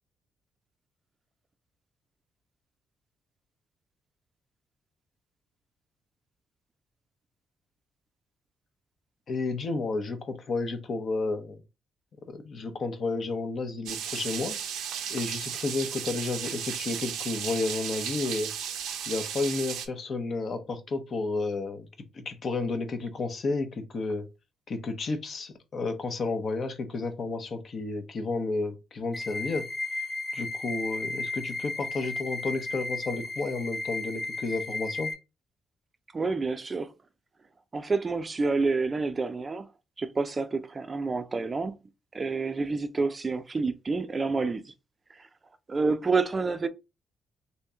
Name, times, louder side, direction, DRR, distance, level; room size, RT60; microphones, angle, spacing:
voice 1, 9.3-11.6 12.3-14.6 15.1-18.5 19.1-21.9 22.1-24.3 24.7-29.7 30.3-35.1, left 3 dB, 50° left, 0.8 m, -31 dB
sound 1, 13.9-19.9, right 8 dB, 90° right, 0.5 m, -35 dB
sound 2, 29.1-35.1, left 3 dB, 15° left, 1.2 m, -34 dB
voice 2, 36.1-36.9 37.7-39.7 40.0-41.7 42.1-44.7 45.7-46.7, right 4 dB, 30° right, 0.4 m, -28 dB
2.9 x 2.8 x 3.5 m
cardioid pair, 90°, 0 cm